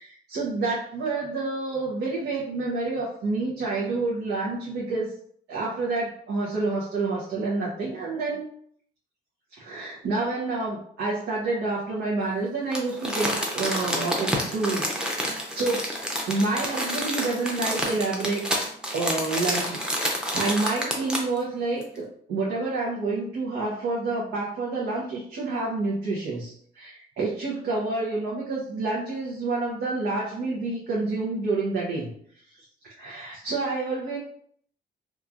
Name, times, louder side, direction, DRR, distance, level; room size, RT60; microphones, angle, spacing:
voice 1, 0.0-5.1 5.5-8.5 9.5-15.8 16.3-18.5 18.9-32.1 32.8-34.2, right 3 dB, 80° right, -6 dB, 0.7 m, -28 dB
Crumpling crinkling, 12.7-21.4 21.8-21.9, equal, 5° right, 0.6 m, -29 dB
2.9 x 2.4 x 2.4 m, 0.62 s
cardioid pair, 105°, 18 cm